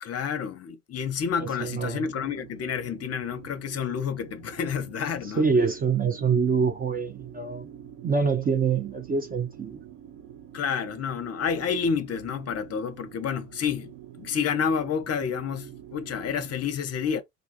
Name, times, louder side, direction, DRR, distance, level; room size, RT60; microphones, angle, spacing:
voice 1, 0.0-5.4 10.5-13.9 14.2-17.2, left 6 dB, 35° left, 0.6 m, -29 dB
voice 2, 1.4-2.1 5.4-7.7 8.0-9.8, right 5 dB, 20° right, 0.5 m, -25 dB
sound 1, 1.4-16.6, right 10 dB, 60° right, 0.8 m, -46 dB
3.6 x 2.3 x 2.5 m
figure-of-eight pair, 55°, 43 cm